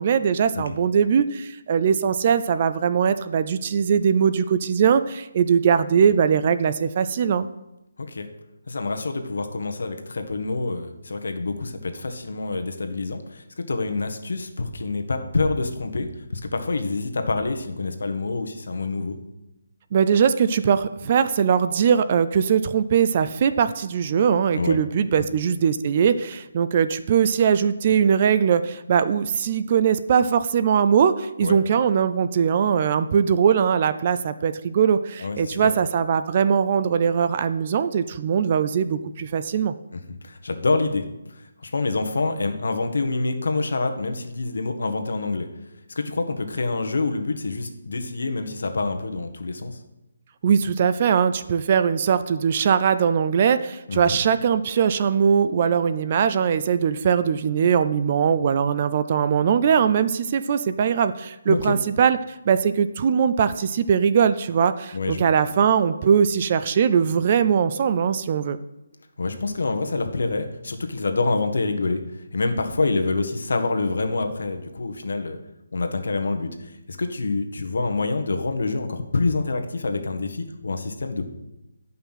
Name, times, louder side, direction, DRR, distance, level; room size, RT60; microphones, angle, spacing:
voice 1, 0.0-7.5 19.9-39.7 50.4-62.2 62.5-68.6, right 7 dB, 30° right, 12 dB, 0.4 m, -21 dB
voice 2, 8.7-19.2 24.5-24.8 25.2-25.3 31.4-31.6 35.2-35.7 39.9-45.5 45.9-49.8 53.9-54.2 61.5-61.8 64.9-65.3 69.2-75.4 75.7-81.2, left 3 dB, 70° left, 6 dB, 1.4 m, -27 dB
11.0 x 5.7 x 5.7 m, 0.92 s
hypercardioid pair, 175°, 0 cm